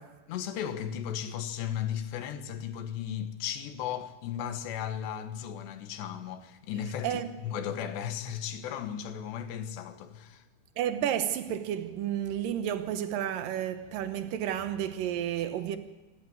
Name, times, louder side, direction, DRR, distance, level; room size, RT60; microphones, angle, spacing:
voice 1, 0.3-10.4, left 9 dB, 85° left, 3.4 m, -35 dB
voice 2, 10.8-15.8, right 10 dB, 70° right, 2.4 m, -31 dB
25.5 x 11.5 x 9.3 m
omnidirectional pair, 4.8 m